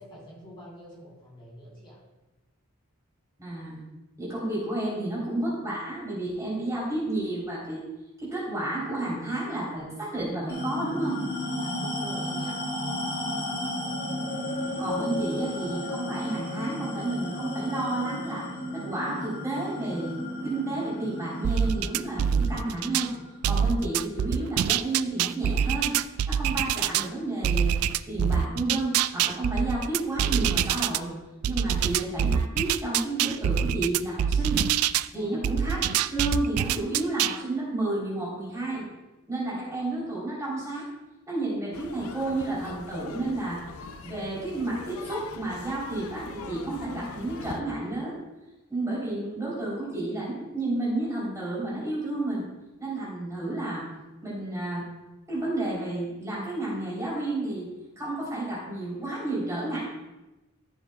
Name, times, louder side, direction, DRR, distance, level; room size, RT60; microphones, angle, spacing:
voice 1, 0.0-2.0 11.6-12.6 31.6-31.7 35.1-35.4, equal, 20° left, -7 dB, 3.4 m, -46 dB
voice 2, 3.4-3.8 4.2-7.9 8.2-11.2 14.8-18.5 18.7-20.2 20.4-23.1 23.4-25.9 26.3-27.8 28.1-31.1 31.4-34.6 35.1-38.9 39.3-40.9 41.3-43.6 44.0-48.2 48.7-52.4 52.8-53.9 54.2-54.8 55.3-57.7 57.9-59.8, right 2 dB, 15° right, -6 dB, 3.4 m, -31 dB
sound 1, 10.5-25.3, left 1 dB, 45° left, 2.4 m, -34 dB
sound 2, 21.4-23.1 23.4-27.1 27.4-31.0 31.4-35.1 35.4-37.4, right 8 dB, 75° right, 0.3 m, -25 dB
sound 3, 41.7-47.6, left 4 dB, 75° left, 0.5 m, -42 dB
15.0 x 7.2 x 2.3 m, 1.0 s
head